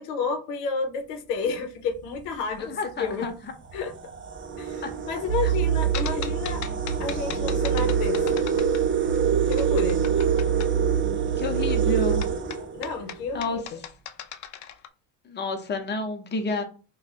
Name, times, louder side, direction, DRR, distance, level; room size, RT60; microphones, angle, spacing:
voice 1, 0.0-3.3 3.7-3.9 4.6-6.6 7.0-8.4 9.5-10.0 12.7-13.8, left 5 dB, 85° left, 0.8 m, -31 dB
sound 1, 2.0-2.2 3.1-3.2 3.6-13.4, right 6 dB, 30° right, 0.4 m, -27 dB
voice 2, 2.7-3.5 4.8-4.9 5.4-5.5 11.4-12.3 13.3-13.6 15.2-16.6, left 3 dB, 25° left, 0.8 m, -30 dB
sound 2, 5.3-12.4, right 10 dB, 80° right, 0.7 m, -27 dB
sound 3, 5.9-9.2 9.5-10.7 12.2-14.9, left 10 dB, 40° left, 0.4 m, -38 dB
2.5 x 2.3 x 4.0 m
supercardioid pair, 85°, 46 cm